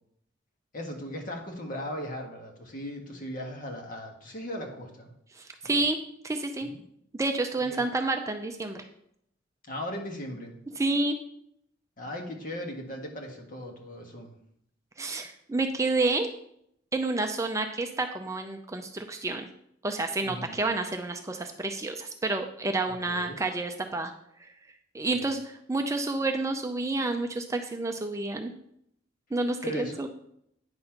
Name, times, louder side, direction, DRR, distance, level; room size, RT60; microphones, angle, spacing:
voice 1, 0.7-5.1 6.6-6.8 7.7-7.8 9.7-10.6 12.0-14.3 20.2-20.5 22.9-23.4 25.1-25.3 29.6-30.0, left 1 dB, 45° left, 2 dB, 1.5 m, -38 dB
voice 2, 5.3-6.0 6.2-6.7 7.1-8.8 10.8-11.2 15.0-16.3 16.9-19.5 19.8-24.1 24.4-24.5 24.9-28.5 29.3-30.1, right 2 dB, 15° right, 5 dB, 0.5 m, -29 dB
9.6 x 4.1 x 5.7 m, 0.73 s
head